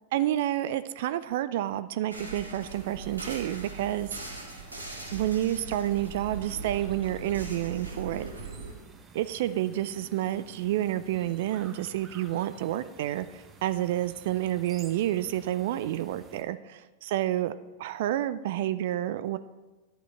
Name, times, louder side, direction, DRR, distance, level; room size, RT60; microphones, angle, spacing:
voice 1, 0.1-4.1 5.1-8.3 9.1-17.5 17.8-19.4, right 13 dB, 55° right, 14 dB, 0.3 m, -29 dB
sound 1, 2.1-8.7, right 3 dB, 80° right, 1.9 m, -40 dB
sound 2, 2.6-16.4, right 5 dB, 20° right, 1.0 m, -52 dB
11.0 x 8.1 x 4.4 m, 1.2 s
figure-of-eight pair, 90°, 0 cm